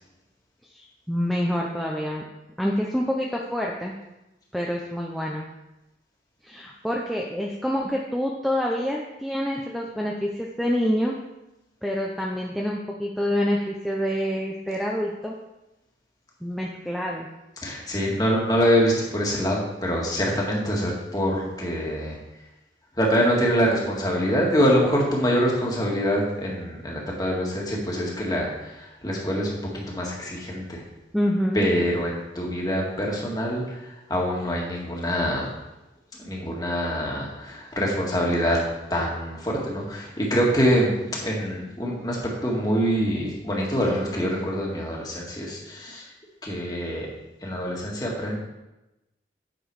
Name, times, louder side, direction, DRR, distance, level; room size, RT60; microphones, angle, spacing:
voice 1, 0.7-2.2 2.6-3.9 4.5-5.5 6.4-11.2 11.8-15.4 16.4-17.3 31.1-31.7, equal, ahead, -2 dB, 0.6 m, -27 dB
voice 2, 17.6-22.2 22.9-30.8 31.5-35.6 36.2-38.6 38.9-46.1 46.4-47.1 47.4-48.4, equal, 20° left, -3 dB, 1.9 m, -25 dB
9.1 x 6.1 x 4.8 m, 0.98 s
head